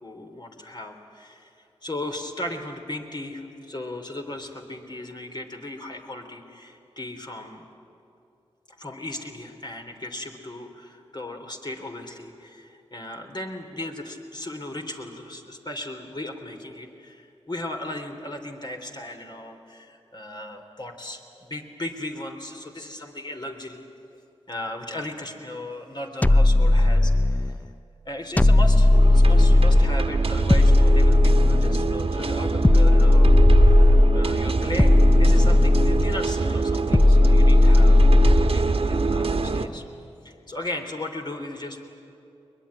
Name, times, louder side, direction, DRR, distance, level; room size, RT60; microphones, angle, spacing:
voice 1, 0.0-7.6 8.7-23.9 24.5-27.5 28.1-39.8 40.2-41.8, left 1 dB, 45° left, 3 dB, 3.6 m, -36 dB
sound 1, 26.2-27.5 28.4-30.0 30.5-31.9 32.6-34.3 34.8-36.2 36.9-38.5, left 1 dB, 15° left, 0.6 m, -16 dB
sound 2, 28.9-39.7, right 3 dB, 60° right, 1.4 m, -25 dB
22.0 x 22.0 x 9.9 m, 2.8 s
cardioid pair, 50°, 11 cm